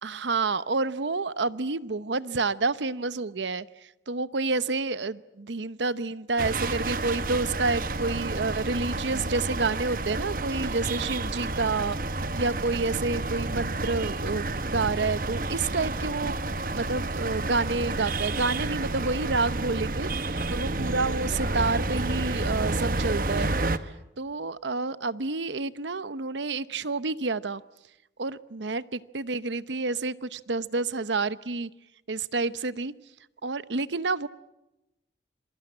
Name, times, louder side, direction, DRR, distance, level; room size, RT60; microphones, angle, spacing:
voice 1, 0.0-12.0 12.3-16.3 16.8-20.1 20.5-23.5 23.8-27.6 28.2-28.8 29.1-31.7 32.1-32.9 33.4-34.3, right 3 dB, 85° right, 16 dB, 0.9 m, -29 dB
sound 1, 6.4-23.8, right 2 dB, 50° right, 1.1 m, -30 dB
27.0 x 23.0 x 8.7 m, 0.93 s
head